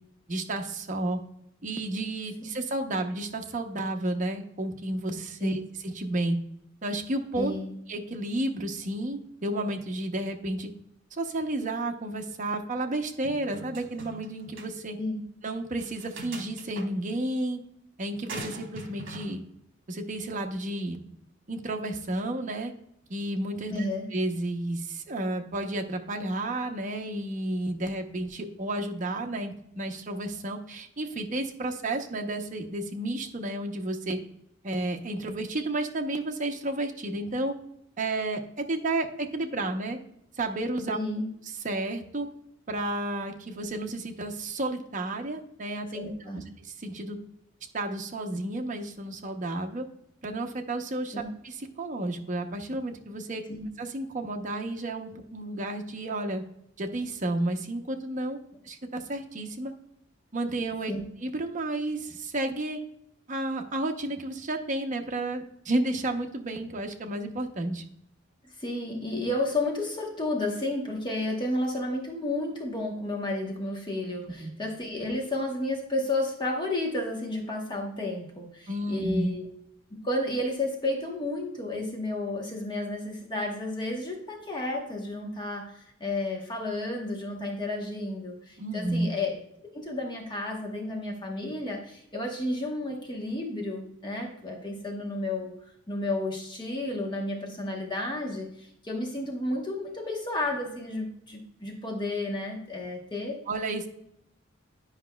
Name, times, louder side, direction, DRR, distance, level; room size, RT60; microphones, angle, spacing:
voice 1, 0.3-1.2 1.6-6.4 6.8-7.5 7.9-10.7 11.1-15.0 15.4-17.6 18.0-19.4 19.9-21.0 21.5-22.7 23.1-23.9 24.1-34.2 34.6-37.5 38.0-40.0 40.4-41.0 41.6-42.3 42.7-47.2 47.7-49.8 50.2-53.4 53.8-56.4 56.8-58.4 58.6-59.7 60.3-60.9 61.2-62.8 63.3-67.8 74.4-74.5 78.7-79.4 88.6-89.1 103.5-103.9, right 2 dB, 40° right, 3 dB, 0.7 m, -31 dB
voice 2, 7.4-7.7 15.0-15.2 23.7-24.1 40.9-41.3 45.9-46.4 51.1-51.3 53.5-53.7 60.9-61.0 68.4-79.5 80.0-95.5 95.9-103.4, left 2 dB, 25° left, 0 dB, 1.0 m, -32 dB
sound 1, 13.2-14.3 14.6-14.7 15.8-16.9 18.3-19.3, right 2 dB, 60° right, 1.4 m, -41 dB
10.0 x 5.1 x 2.2 m, 0.73 s
head